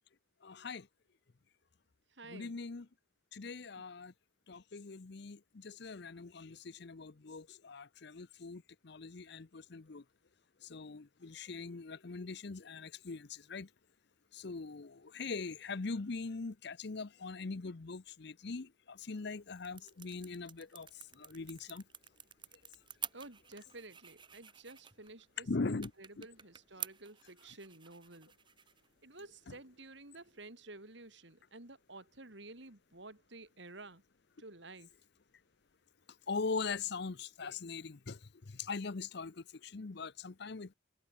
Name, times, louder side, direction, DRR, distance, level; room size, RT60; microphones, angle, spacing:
voice 1, 0.4-0.9 2.3-2.9 3.3-4.1 4.5-10.0 10.7-13.7 14.3-20.9 21.1-21.8 25.4-25.9 26.2-26.3 29.5-29.6 36.3-38.2 38.5-40.7, left 4 dB, 55° left, 0.7 m, -41 dB
voice 2, 2.1-2.6 23.1-28.3 29.0-34.0 34.4-35.0, right 2 dB, 60° right, 3.8 m, -52 dB
sound 1, 19.0-30.5, right 9 dB, 25° right, 1.9 m, -51 dB
head